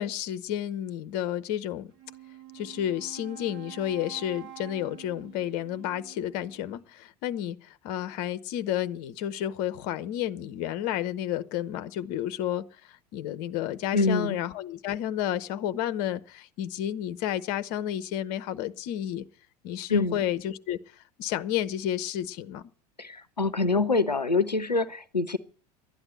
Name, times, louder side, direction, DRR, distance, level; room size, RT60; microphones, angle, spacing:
voice 1, 0.0-1.9 2.5-19.2 19.6-20.8 21.2-22.7, left 11 dB, 45° left, 0.8 m, -31 dB
Wind instrument woodwind instrument, 1.9-6.8, right 14 dB, 50° right, 2.3 m, -47 dB
voice 2, 13.9-14.4 19.9-20.2 23.0-25.4, left 3 dB, 90° left, 0.6 m, -25 dB
12.5 x 9.9 x 7.9 m
figure-of-eight pair, 80°, 21 cm